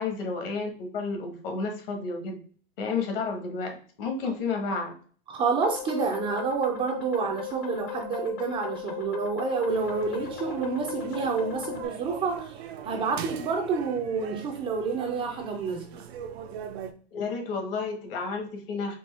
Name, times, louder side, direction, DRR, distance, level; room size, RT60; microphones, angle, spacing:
voice 1, 0.0-2.4 2.8-4.9 17.1-18.9, left 4 dB, 65° left, 4 dB, 1.3 m, -31 dB
voice 2, 5.3-16.1, right 5 dB, 20° right, 2 dB, 0.3 m, -29 dB
sound 1, 5.6-11.9, left 11 dB, 40° left, 0.6 m, -37 dB
sound 2, 9.7-16.9, right 9 dB, 85° right, 0.6 m, -41 dB
4.4 x 2.6 x 3.2 m, 0.43 s
supercardioid pair, 135°, 31 cm